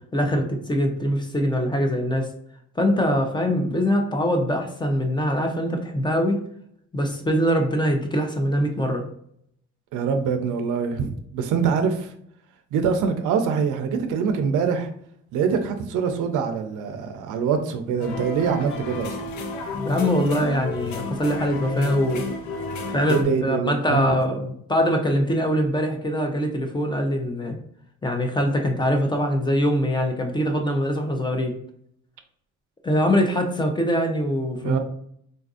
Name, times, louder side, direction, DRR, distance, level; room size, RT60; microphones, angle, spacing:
voice 1, 0.1-2.3 2.8-6.4 6.9-9.0 19.8-22.2 22.9-27.6 28.0-31.5 32.8-34.8, equal, 15° left, 0.6 m, -23 dB
voice 2, 9.9-12.1 12.7-14.9 15.3-19.2 23.1-24.1 34.6-34.8, right 6 dB, 90° right, 0.6 m, -24 dB
sound 1, 18.0-23.2, left 3 dB, 75° left, 0.6 m, -31 dB
3.9 x 2.5 x 2.4 m
cardioid pair, 90°, 30 cm